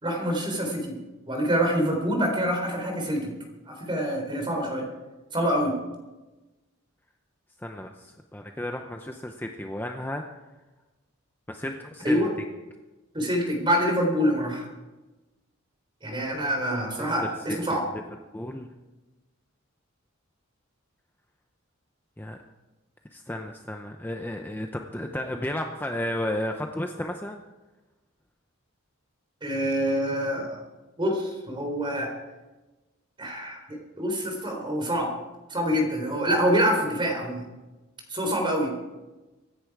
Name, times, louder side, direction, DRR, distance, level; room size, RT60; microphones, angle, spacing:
voice 1, 0.0-1.0 1.3-3.3 3.7-4.9 5.3-5.8 12.0-12.3 13.1-14.7 16.0-17.8 29.4-30.6 31.0-32.1 33.2-35.1 35.5-37.4 38.1-38.7, equal, 25° right, 3 dB, 3.6 m, -26 dB
voice 2, 7.6-10.2 11.5-12.3 17.0-18.0 18.3-18.7 22.2-22.4 23.1-27.4, left 1 dB, 10° left, 4 dB, 0.7 m, -33 dB
24.0 x 10.0 x 4.7 m, 1.1 s
head